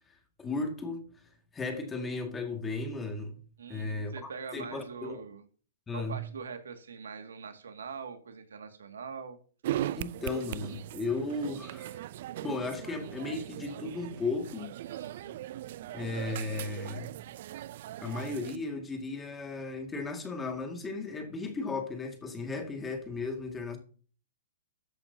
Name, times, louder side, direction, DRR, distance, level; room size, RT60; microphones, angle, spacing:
voice 1, 0.4-1.1 1.5-3.4 3.7-5.2 5.9-6.2 10.0-12.0 12.4-14.7 15.9-17.2 18.0-23.8, left 3 dB, 10° left, 1.9 m, -35 dB
voice 2, 3.6-5.4 5.9-9.4 14.8-15.5, right 6 dB, 85° right, 2.0 m, -43 dB
sound 1, 9.6-18.6, right 13 dB, 50° right, 0.4 m, -39 dB
13.5 x 8.2 x 2.7 m
hypercardioid pair, 145°, 0 cm